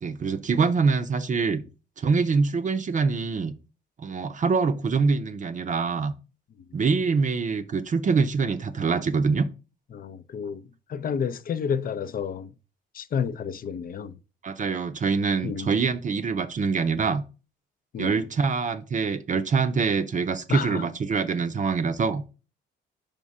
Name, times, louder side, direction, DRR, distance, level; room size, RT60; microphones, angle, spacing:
voice 1, 0.0-1.6 2.0-3.5 4.0-6.1 6.7-9.5 14.4-17.2 18.0-22.2, right 5 dB, 40° right, 0.6 m, -24 dB
voice 2, 9.9-12.5 12.9-14.2 15.4-15.7 17.9-18.2 20.5-20.9, left 7 dB, 45° left, 0.5 m, -30 dB
5.3 x 3.6 x 5.3 m
cardioid pair, 90°, 20 cm